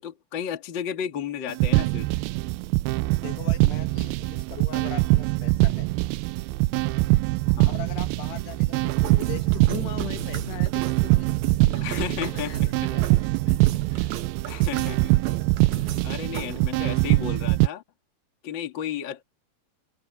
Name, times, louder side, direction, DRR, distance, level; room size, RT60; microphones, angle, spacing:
voice 1, 0.0-2.1 7.5-7.7 11.8-12.5 12.8-12.9 13.9-14.2 14.4-15.1 15.7-17.8 18.4-19.2, left 9 dB, 40° left, 1.9 m, -33 dB
sound 1, 1.5-17.7, right 20 dB, 85° right, 2.1 m, -23 dB
voice 2, 3.2-5.9 7.7-13.2, left 12 dB, 80° left, 3.6 m, -40 dB
sound 2, 8.7-16.7, right 10 dB, 65° right, 1.9 m, -36 dB
omnidirectional pair, 4.8 m